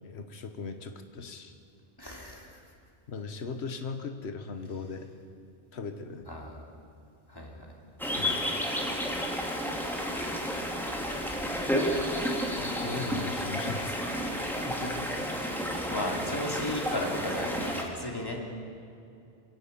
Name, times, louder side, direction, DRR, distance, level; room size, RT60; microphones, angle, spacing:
voice 1, 0.0-1.5 3.1-5.1 5.7-6.3 8.1-8.4 12.6-14.0, left 4 dB, 80° left, 7 dB, 1.4 m, -38 dB
voice 2, 2.0-2.6 6.3-6.6 7.3-7.7 14.5-15.0 15.3-18.4, left 1 dB, 20° left, -1 dB, 2.9 m, -36 dB
sound 1, 8.0-17.8, equal, ahead, 2.5 m, -31 dB
27.5 x 11.0 x 8.8 m, 2.6 s
omnidirectional pair, 1.1 m